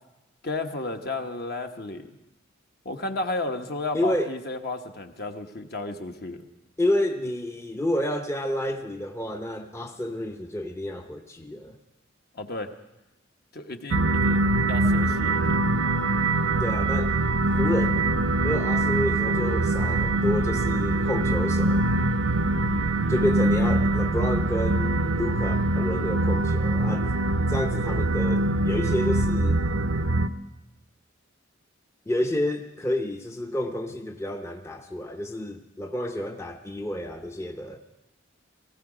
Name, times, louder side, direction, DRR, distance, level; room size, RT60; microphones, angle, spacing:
voice 1, 0.4-2.1 2.8-6.4 12.3-12.7 13.5-15.6, left 2 dB, 55° left, 5 dB, 1.1 m, -33 dB
voice 2, 3.9-4.3 6.8-11.8 16.6-17.1 17.6-18.0 18.4-21.9 23.1-27.1 27.5-29.6 32.1-37.8, left 1 dB, 15° left, 5 dB, 0.6 m, -29 dB
sound 1, 13.9-30.3, right 2 dB, 80° right, 0.6 m, -23 dB
18.5 x 15.5 x 4.9 m, 0.98 s
head